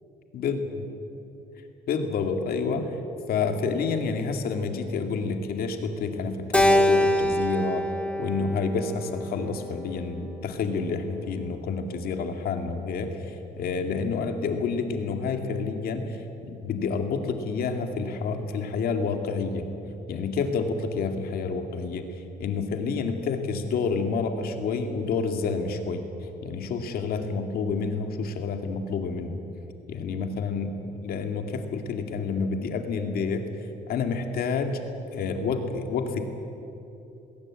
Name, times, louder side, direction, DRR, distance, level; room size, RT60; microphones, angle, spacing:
voice 1, 1.9-2.9 3.3-7.9 8.2-16.2 16.4-19.7 20.1-22.1 22.4-26.1 26.4-29.4 29.9-33.5 33.9-34.8 35.1-36.3, left 5 dB, 65° left, 5 dB, 2.4 m, -29 dB
Keyboard (musical), 6.5-10.9, equal, 5° left, 1.6 m, -26 dB
20.0 x 17.5 x 8.8 m, 2.9 s
cardioid pair, 110°, 17 cm